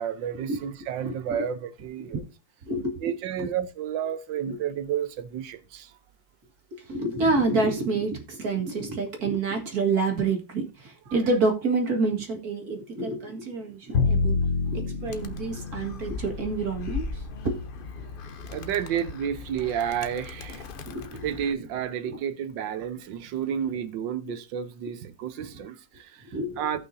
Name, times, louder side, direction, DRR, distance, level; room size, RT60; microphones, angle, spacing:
voice 1, 0.0-2.2 3.0-5.9 18.5-20.7 21.2-26.2 26.6-26.8, right 9 dB, 80° right, 1.5 m, -31 dB
voice 2, 1.0-1.4 2.0-2.2 2.7-3.5 4.5-4.6 6.7-14.4 14.7-17.6 18.0-18.1 20.8-21.3 21.5-21.6 22.0-22.2 26.3-26.8, right 3 dB, 55° right, 2.2 m, -28 dB
Bowed string instrument, 13.9-20.1, left 4 dB, 50° left, 1.1 m, -30 dB
Animal, 15.1-21.5, left 4 dB, 70° left, 0.5 m, -39 dB
17.0 x 5.8 x 2.7 m
omnidirectional pair, 2.0 m